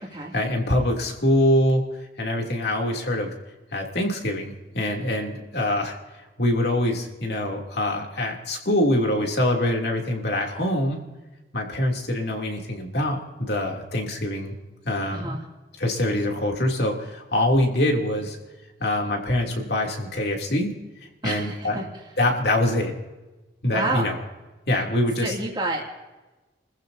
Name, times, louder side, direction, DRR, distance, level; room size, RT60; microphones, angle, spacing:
voice 1, 0.3-1.8 2.2-3.3 3.7-6.0 6.4-11.0 11.5-14.6 14.8-15.4 15.8-18.4 18.8-20.7 21.2-21.8 22.2-23.0 23.6-24.1 24.7-25.3, left 1 dB, 60° left, 1 dB, 3.0 m, -24 dB
voice 2, 15.1-15.4 21.2-21.9 23.7-24.1 25.2-26.0, right 2 dB, 25° right, -3 dB, 2.7 m, -29 dB
29.5 x 15.0 x 2.8 m, 1.1 s
head